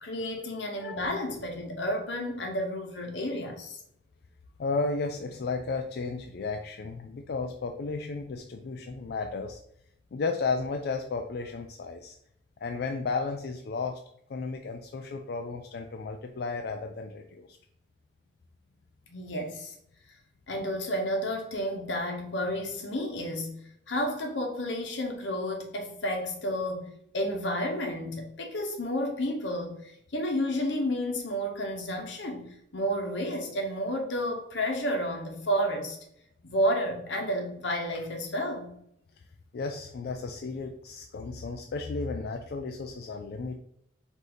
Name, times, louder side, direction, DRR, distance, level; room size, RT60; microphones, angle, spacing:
voice 1, 0.0-3.8 19.1-19.7 20.5-23.5 23.9-26.9 27.1-36.0 36.4-38.7, equal, 85° left, 3 dB, 1.0 m, -31 dB
voice 2, 4.6-9.6 10.1-12.1 12.6-14.0 14.3-17.6 39.5-43.6, left 4 dB, 60° left, 4 dB, 0.3 m, -33 dB
4.8 x 2.7 x 3.9 m, 0.72 s
head